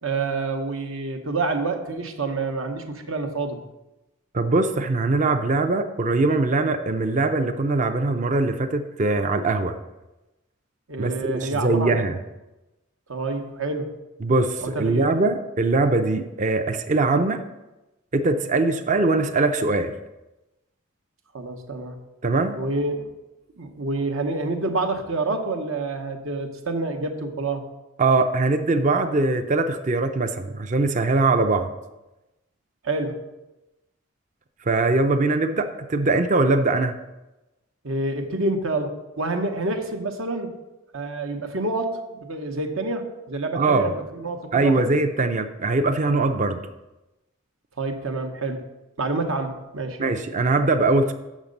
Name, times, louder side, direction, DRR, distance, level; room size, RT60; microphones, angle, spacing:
voice 1, 0.0-3.6 10.9-12.1 13.1-13.9 14.6-15.1 21.3-22.0 22.6-23.1 23.6-27.6 32.8-33.2 37.8-40.5 40.9-44.9 47.8-48.6 49.0-50.2, right 3 dB, 75° right, 5 dB, 1.0 m, -28 dB
voice 2, 4.3-9.8 11.0-12.2 14.2-17.4 18.1-19.9 22.2-22.6 28.0-31.7 34.7-37.0 43.5-43.9 44.5-46.6 50.0-51.1, right 3 dB, 35° right, 8 dB, 0.5 m, -22 dB
7.3 x 6.5 x 5.2 m, 1.0 s
head